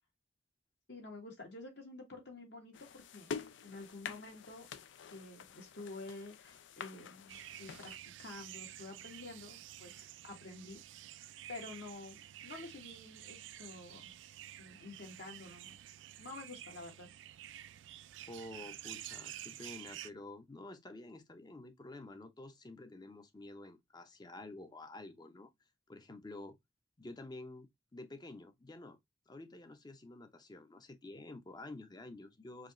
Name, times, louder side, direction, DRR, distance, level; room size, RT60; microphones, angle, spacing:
voice 1, 0.9-3.3 3.6-4.7 5.1-7.9 8.2-11.1 11.5-14.1 14.6-15.8 16.2-17.1, left 2 dB, 65° left, 1.8 m, -49 dB
sound 1, 2.7-8.0, left 6 dB, 85° left, 0.5 m, -47 dB
sound 2, 7.3-20.1, right 12 dB, 80° right, 0.3 m, -50 dB
voice 2, 18.3-25.5 25.9-26.6 27.0-29.0 29.3-32.7, left 2 dB, 25° left, 0.6 m, -50 dB
4.9 x 2.4 x 2.9 m
head